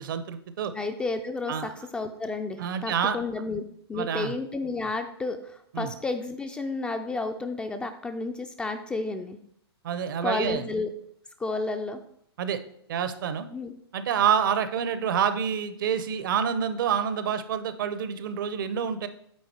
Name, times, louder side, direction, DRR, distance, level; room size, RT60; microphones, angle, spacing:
voice 1, 0.0-0.7 1.5-1.7 2.6-3.2 3.9-4.3 5.7-5.9 9.8-10.6 12.4-12.6 12.9-13.5 13.9-19.1, right 8 dB, 50° right, 12 dB, 0.7 m, -27 dB
voice 2, 0.7-3.6 3.9-9.4 10.2-10.9 11.4-12.0 13.5-13.7, left 3 dB, 5° left, 6 dB, 0.3 m, -31 dB
8.6 x 3.8 x 4.5 m, 0.69 s
figure-of-eight pair, 115°, 14 cm